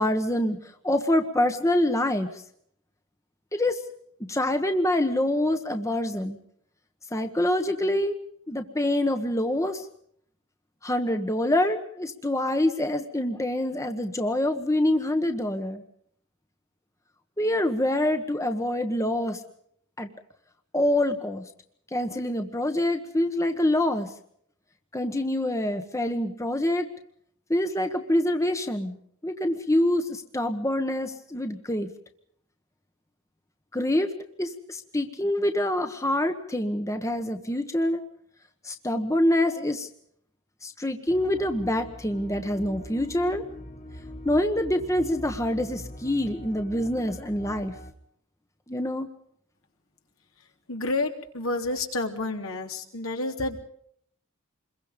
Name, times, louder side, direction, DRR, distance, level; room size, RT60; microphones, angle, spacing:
voice 1, 0.0-2.4 3.5-3.8 4.2-6.4 7.1-8.2 8.5-9.9 10.8-15.8 17.4-19.4 20.0-20.1 20.7-21.4 21.9-24.1 24.9-26.9 27.5-29.0 29.2-31.9 33.7-38.0 38.6-39.9 40.6-43.4 44.2-47.7 48.7-49.1, left 1 dB, 15° left, 7 dB, 1.3 m, -26 dB
sound 1, 41.1-47.9, left 1 dB, 35° left, 2.4 m, -42 dB
voice 2, 50.4-53.6, left 2 dB, 70° left, 4 dB, 3.4 m, -30 dB
27.5 x 22.5 x 5.3 m, 0.67 s
head